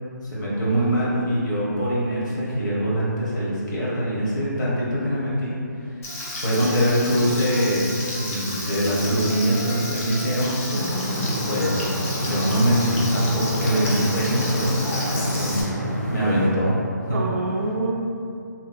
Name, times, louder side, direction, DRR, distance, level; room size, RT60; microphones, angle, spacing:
voice 1, 0.2-6.0 6.4-10.6 11.2-11.9 12.1-15.7 16.1-16.8 17.0-17.2, equal, 65° left, -7 dB, 1.0 m, -23 dB
Trumpet, 6.0-13.8, equal, 90° left, 1.2 m, -43 dB
Frying (food), 6.0-15.6, left 1 dB, 45° left, 0.6 m, -32 dB
sound 1, 10.7-16.5, equal, 5° left, 0.4 m, -28 dB
voice 2, 10.7-11.3 17.1-17.9, right 2 dB, 55° right, -1 dB, 0.4 m, -27 dB
2.9 x 2.4 x 2.4 m, 2.6 s
hypercardioid pair, 160°, 10 cm